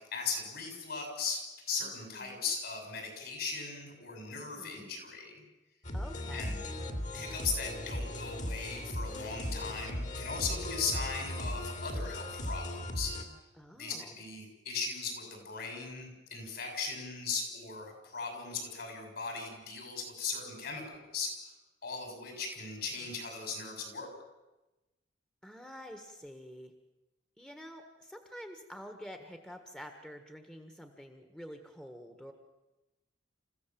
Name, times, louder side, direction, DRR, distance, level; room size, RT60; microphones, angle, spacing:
voice 1, 0.0-1.4 1.7-5.4 6.3-6.6 7.1-13.1 13.8-21.5 21.8-24.1, left 4 dB, 60° left, 3 dB, 6.8 m, -38 dB
voice 2, 1.8-2.5 4.4-4.9 5.9-6.5 13.5-14.1 25.4-26.7 27.4-32.3, equal, 5° left, 5 dB, 1.5 m, -48 dB
sound 1, 5.8-13.2, left 1 dB, 40° left, 2.6 m, -37 dB
28.5 x 15.5 x 7.6 m, 1.0 s
head